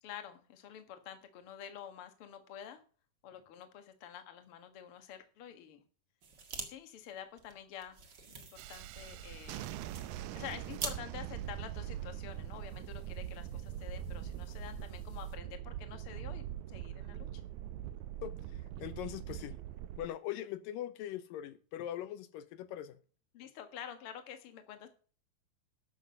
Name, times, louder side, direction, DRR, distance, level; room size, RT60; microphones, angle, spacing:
voice 1, 0.0-2.8 3.2-5.8 6.6-8.0 8.3-9.8 10.3-17.4 23.3-24.9, left 9 dB, 50° left, 2.0 m, -48 dB
sound 1, 6.2-6.7 7.0-7.1 7.4-11.0, right 5 dB, 40° right, 1.9 m, -44 dB
Thunderstorm, 8.6-20.1, right 12 dB, 80° right, 1.8 m, -42 dB
sound 2, 9.0-15.3, left 1 dB, 25° left, 1.8 m, -56 dB
voice 2, 18.2-19.6 20.0-23.0, left 12 dB, 80° left, 2.4 m, -41 dB
12.5 x 7.7 x 5.3 m
omnidirectional pair, 4.0 m